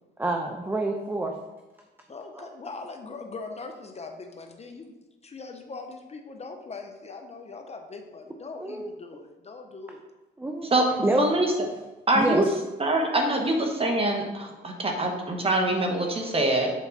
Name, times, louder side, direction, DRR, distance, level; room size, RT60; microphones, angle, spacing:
voice 1, 0.2-1.3 2.3-2.5 8.6-8.9 10.4-10.7 11.0-11.2 12.1-12.4, right 1 dB, 10° right, 2 dB, 0.7 m, -27 dB
voice 2, 2.1-4.9 5.2-10.0, left 3 dB, 35° left, 5 dB, 0.7 m, -41 dB
voice 3, 11.2-11.5 12.1-12.5 12.8-16.7, right 2 dB, 30° right, 2 dB, 1.4 m, -24 dB
7.3 x 4.6 x 4.1 m, 1.1 s
cardioid pair, 90°, 20 cm